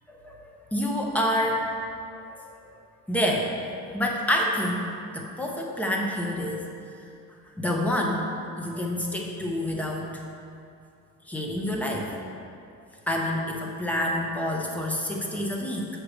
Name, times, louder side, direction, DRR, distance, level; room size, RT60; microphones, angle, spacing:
voice 1, 0.1-1.7 2.1-2.6 3.1-3.5 3.9-4.9 5.1-6.7 7.6-8.3 8.6-10.3 11.2-12.1 13.1-15.9, left 1 dB, 5° left, -1 dB, 0.6 m, -28 dB
6.2 x 4.8 x 6.2 m, 2.5 s
cardioid pair, 170°, 36 cm